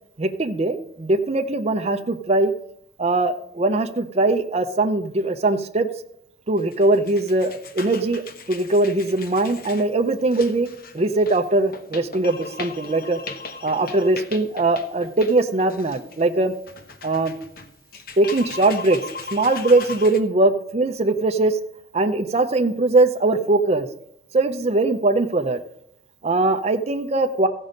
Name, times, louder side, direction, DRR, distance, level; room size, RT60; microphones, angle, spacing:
voice 1, 0.2-2.5 3.0-5.9 6.5-8.2 8.5-10.7 10.9-13.2 13.6-16.5 17.0-17.3 18.2-19.0 19.3-21.6 21.9-23.9 24.3-25.6 26.2-27.5, right 2 dB, 35° right, 5 dB, 0.6 m, -21 dB
sound 1, 6.6-20.2, left 4 dB, 55° left, 1.0 m, -38 dB
15.0 x 5.4 x 5.1 m, 0.75 s
head